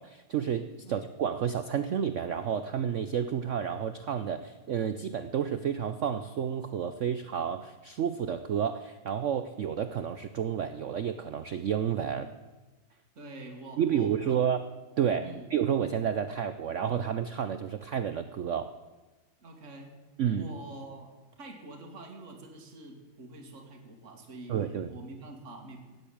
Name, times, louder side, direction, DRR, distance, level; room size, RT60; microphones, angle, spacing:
voice 1, 0.0-12.3 13.8-14.7 15.0-18.7 20.2-20.5 24.5-24.9, right 8 dB, 75° right, 11 dB, 0.6 m, -30 dB
voice 2, 13.2-14.4 15.2-15.5 19.4-20.0 20.4-21.1 21.4-26.0, right 2 dB, 40° right, 2 dB, 2.4 m, -46 dB
17.0 x 8.1 x 8.7 m, 1.2 s
omnidirectional pair, 2.0 m